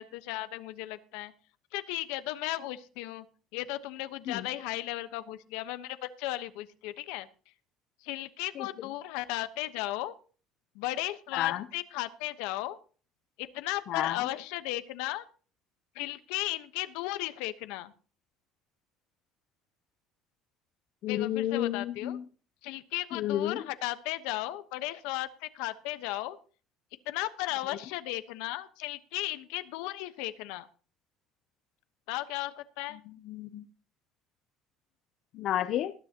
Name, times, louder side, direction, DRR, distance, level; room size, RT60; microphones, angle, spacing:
voice 1, 0.0-1.3 1.7-3.2 3.5-7.3 8.0-10.1 10.7-12.8 13.4-15.2 15.9-17.9 21.0-22.2 22.6-26.4 27.1-30.7 32.1-33.0, left 16 dB, 85° left, 12 dB, 1.1 m, -35 dB
voice 2, 11.3-11.6 13.9-14.3 21.0-22.2 23.1-23.6 33.1-33.7 35.3-35.9, left 12 dB, 45° left, 12 dB, 0.6 m, -31 dB
19.5 x 10.0 x 2.9 m, 0.38 s
cardioid pair, 165°, 0 cm